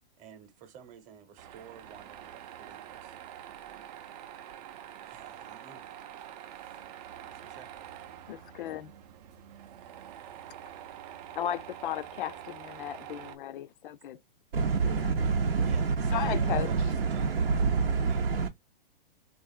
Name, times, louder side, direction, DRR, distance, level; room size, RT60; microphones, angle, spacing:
voice 1, 0.2-3.1 5.1-6.0 7.3-7.7 8.5-8.6 15.2-15.3 15.6-17.7 18.0-18.5, right 9 dB, 25° right, 0.9 m, -51 dB
Tools, 1.4-13.4, right 11 dB, 45° right, 0.5 m, -46 dB
voice 2, 8.3-8.9 11.4-14.2 14.8-15.1 16.1-16.7, left 11 dB, 60° left, 0.4 m, -35 dB
voice 3, 14.5-18.5, right 5 dB, 85° right, 0.7 m, -27 dB
3.6 x 2.4 x 2.3 m
hypercardioid pair, 120°, 29 cm